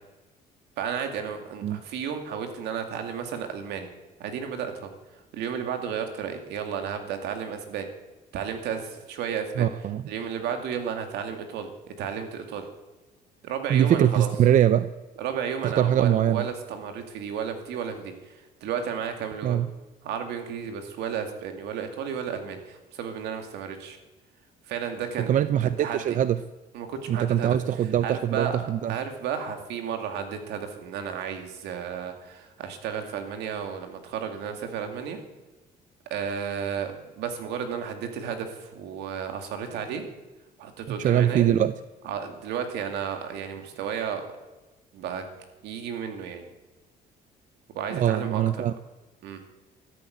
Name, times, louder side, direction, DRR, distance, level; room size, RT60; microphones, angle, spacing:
voice 1, 0.8-3.9 4.2-4.9 5.3-7.9 8.3-9.7 10.1-11.7 12.0-12.7 13.4-14.3 15.2-19.6 20.0-24.0 24.7-25.3 25.8-26.2 26.7-27.6 28.0-28.6 28.9-35.2 36.1-40.0 40.6-41.5 42.1-44.3 44.9-45.3 45.6-46.4 47.7-48.7 49.2-49.4, right 7 dB, 80° right, 6 dB, 2.2 m, -33 dB
voice 2, 9.6-10.0 13.7-14.9 15.6-16.4 19.4-19.7 25.3-26.4 27.1-28.9 40.9-41.7 47.9-48.7, right 10 dB, 50° right, 14 dB, 0.5 m, -22 dB
13.5 x 8.4 x 9.2 m, 1.1 s
cardioid pair, 110°, 17 cm